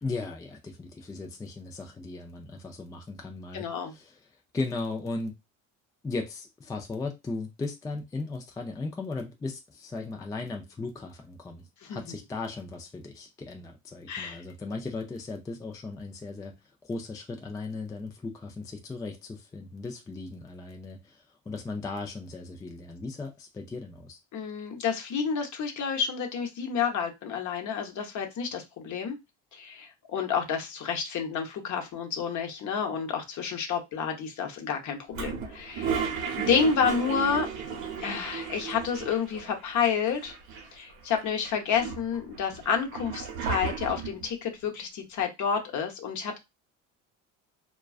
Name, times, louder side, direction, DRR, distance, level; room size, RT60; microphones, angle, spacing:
voice 1, 0.0-4.2 4.5-5.3 6.0-16.5 16.8-24.2, left 3 dB, 10° left, 0.3 m, -37 dB
voice 2, 3.5-3.9 11.9-12.0 14.1-14.4 24.3-29.2 29.5-36.0 36.4-37.5 38.0-40.3 40.7-46.4, left 6 dB, 50° left, 0.8 m, -29 dB
Toilet flush, 35.1-39.5 39.8-39.9 40.1-40.9 41.4-44.3, right 6 dB, 80° right, 0.8 m, -34 dB
2.3 x 2.3 x 2.3 m
supercardioid pair, 80°, 37 cm